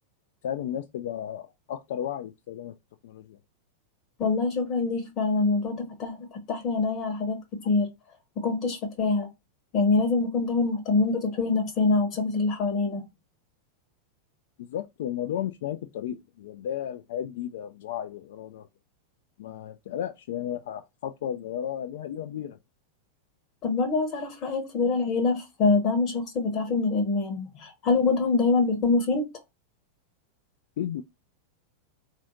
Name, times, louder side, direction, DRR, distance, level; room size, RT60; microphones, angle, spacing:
voice 1, 0.4-2.7 3.0-3.4 14.6-18.7 19.4-22.6 30.8-31.0, left 10 dB, 55° left, 0.3 m, -34 dB
voice 2, 4.2-7.9 8.4-9.3 9.7-13.0 23.6-29.3, left 3 dB, 35° left, 0.8 m, -25 dB
3.9 x 2.5 x 2.9 m
figure-of-eight pair, 90°, 0 cm